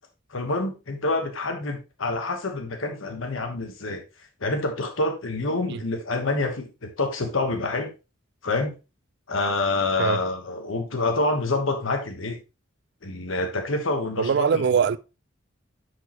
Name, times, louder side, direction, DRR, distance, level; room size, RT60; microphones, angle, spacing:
voice 1, 0.3-4.0 4.4-7.9 8.4-8.7 9.3-12.4 13.0-14.6, left 2 dB, 90° left, 1.3 m, -27 dB
voice 2, 14.2-15.0, right 6 dB, 60° right, 0.4 m, -22 dB
10.5 x 4.8 x 3.0 m
head